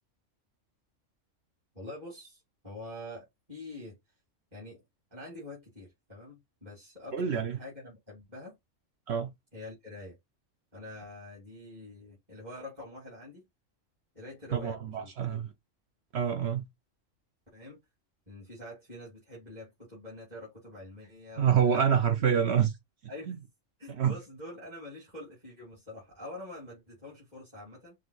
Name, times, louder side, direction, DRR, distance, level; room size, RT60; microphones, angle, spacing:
voice 1, 1.7-4.0 4.5-4.8 5.1-8.6 9.5-10.2 10.7-13.4 14.1-15.1 17.5-17.8 18.3-21.8 23.1-23.4 23.8-27.9, left 1 dB, 35° right, 2.8 m, -45 dB
voice 2, 7.1-7.6 9.1-9.3 14.5-15.5 16.1-16.7 21.4-22.7 23.3-23.4 23.9-24.2, right 8 dB, 60° right, 0.8 m, -26 dB
6.0 x 2.2 x 3.0 m
omnidirectional pair, 1.3 m